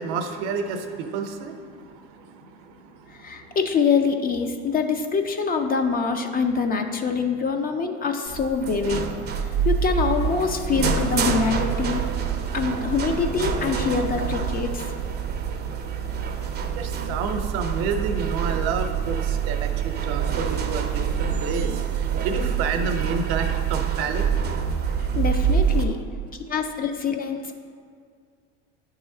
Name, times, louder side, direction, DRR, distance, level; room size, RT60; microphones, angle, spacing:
voice 1, 0.0-2.9 16.6-24.3, right 4 dB, 70° right, 6 dB, 0.7 m, -30 dB
voice 2, 3.2-9.1 9.7-12.0 12.5-14.7 25.1-26.0 26.5-27.5, left 5 dB, 25° left, 5 dB, 0.4 m, -24 dB
sound 1, 8.3-25.8, right 7 dB, 30° right, 0.5 m, -26 dB
8.5 x 3.0 x 3.7 m, 2.1 s
supercardioid pair, 95°, 34 cm